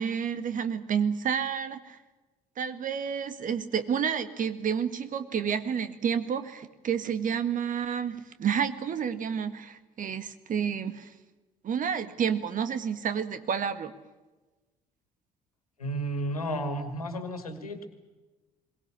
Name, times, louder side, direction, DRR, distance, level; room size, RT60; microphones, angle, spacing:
voice 1, 0.0-2.0 2.6-11.1 11.6-13.9, right 7 dB, 45° right, 12 dB, 1.8 m, -30 dB
voice 2, 15.8-17.9, right 1 dB, 90° left, 8 dB, 2.1 m, -32 dB
22.5 x 19.0 x 8.5 m, 1.2 s
figure-of-eight pair, 50°, 18 cm